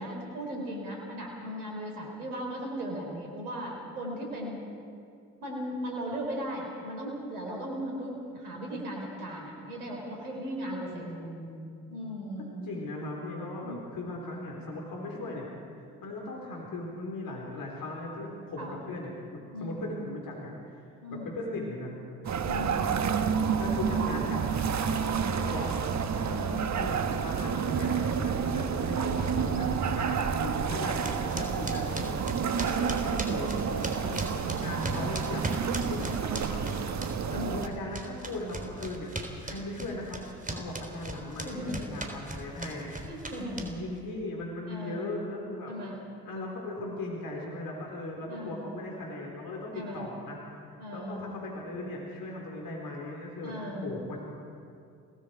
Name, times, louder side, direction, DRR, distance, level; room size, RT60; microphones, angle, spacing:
voice 1, 0.0-4.7 5.4-11.2 11.9-12.6 13.6-13.8 18.6-18.7 19.5-19.9 21.0-21.4 22.4-23.0 25.0-25.5 26.2-26.7 34.7-34.9 37.3-37.5 41.4-41.8 43.1-43.8 44.6-45.1 45.7-46.0 48.3-48.6 49.7-50.1 50.8-51.3 53.4-53.9, equal, 80° right, 0 dB, 4.2 m, -37 dB
voice 2, 10.6-11.8 12.4-15.5 16.0-21.9 23.6-24.7 25.0-25.2 25.4-25.8 26.8-29.7 29.9-34.2 34.5-36.8 37.3-40.2 40.5-42.9 43.6-45.7 46.2-50.6 50.9-54.2, left 2 dB, 50° left, -1 dB, 4.9 m, -38 dB
sound 1, 22.2-37.7, right 6 dB, 40° right, 1.6 m, -29 dB
sound 2, 31.0-37.4 37.6-44.0, right 2 dB, 20° right, 3.8 m, -37 dB
29.5 x 19.0 x 4.9 m, 2.4 s
figure-of-eight pair, 45°, 44 cm